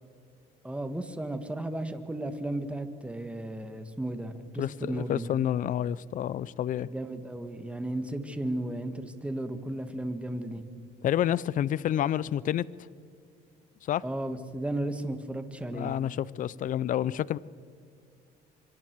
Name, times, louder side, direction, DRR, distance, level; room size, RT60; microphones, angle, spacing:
voice 1, 0.6-5.3 6.8-10.6 14.0-15.9, right 1 dB, 5° right, 1.6 m, -34 dB
voice 2, 4.6-6.9 11.0-12.6 13.8-14.0 15.7-17.4, left 11 dB, 50° left, 0.6 m, -29 dB
26.0 x 23.5 x 4.7 m
cardioid pair, 110°, 17 cm